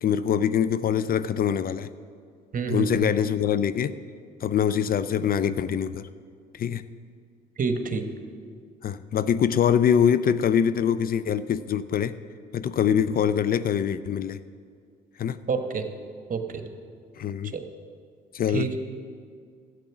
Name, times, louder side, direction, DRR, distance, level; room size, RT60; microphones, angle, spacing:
voice 1, 0.0-1.9 2.7-3.9 4.4-6.1 6.5-6.9 8.8-12.2 12.5-14.4 15.2-15.4 17.2-17.5 18.3-18.8, left 8 dB, 45° left, 14 dB, 0.5 m, -24 dB
voice 2, 2.5-3.1 7.6-8.1 15.5-15.9 16.3-16.7 17.5-17.6 18.5-18.8, right 5 dB, 40° right, 7 dB, 1.2 m, -28 dB
12.5 x 8.2 x 6.1 m, 2.1 s
hypercardioid pair, 55°, 20 cm